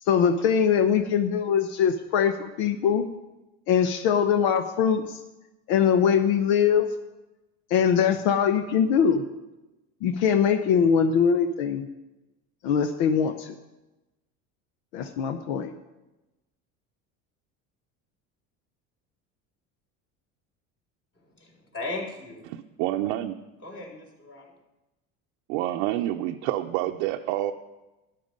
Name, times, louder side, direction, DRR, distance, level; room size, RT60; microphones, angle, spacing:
voice 1, 0.1-3.0 3.7-5.2 5.7-6.9 7.7-9.2 10.0-11.9 12.6-13.5 14.9-15.7, left 7 dB, 85° left, 8 dB, 0.8 m, -22 dB
voice 2, 21.2-22.5 23.6-24.5, left 2 dB, 35° left, 0 dB, 3.8 m, -37 dB
voice 3, 22.5-23.4 25.5-27.5, right 14 dB, 85° right, 3 dB, 0.7 m, -28 dB
12.5 x 10.5 x 5.3 m, 1.0 s
supercardioid pair, 110°, 33 cm